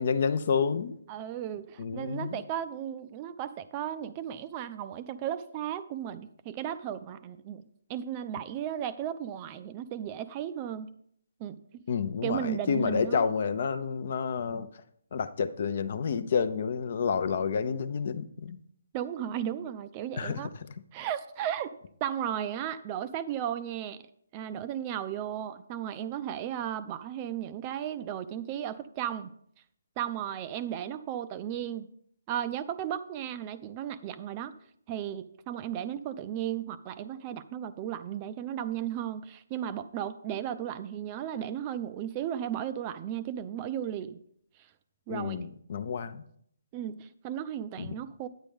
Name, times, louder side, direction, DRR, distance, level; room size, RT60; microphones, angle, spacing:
voice 1, 0.0-1.0 1.8-2.4 11.9-14.7 15.1-18.6 20.2-20.5 45.1-46.2 47.8-48.0, left 6 dB, 50° left, 0.6 m, -29 dB
voice 2, 1.1-7.6 7.9-10.9 11.4-11.6 12.2-13.2 18.9-20.5 20.9-21.7 22.0-24.0 24.3-29.3 30.0-31.9 32.3-34.5 34.9-44.2 45.1-45.5 46.7-48.3, right 10 dB, 25° right, 0.4 m, -35 dB
9.0 x 8.9 x 3.5 m
figure-of-eight pair, 140°, 0 cm